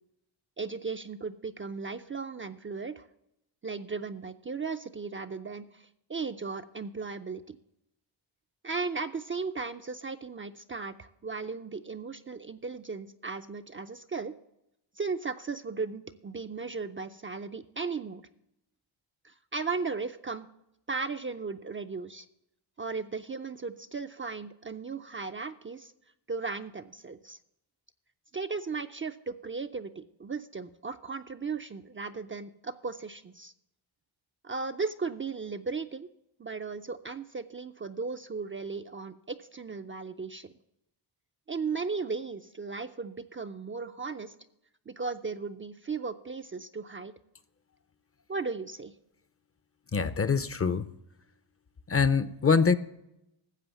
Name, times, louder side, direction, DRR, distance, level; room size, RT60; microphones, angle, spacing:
voice 1, 0.6-3.1 3.6-7.6 8.6-14.3 15.0-18.2 19.2-20.5 20.9-22.3 22.8-25.9 26.3-27.4 28.3-33.5 34.4-36.1 36.4-40.5 41.5-44.3 44.9-47.1 48.3-48.9, right 4 dB, 25° right, 0.4 m, -36 dB
voice 2, 49.9-50.8 51.9-52.8, left 5 dB, 30° left, 0.5 m, -24 dB
13.0 x 7.8 x 6.9 m
wide cardioid pair, 120°, 49 cm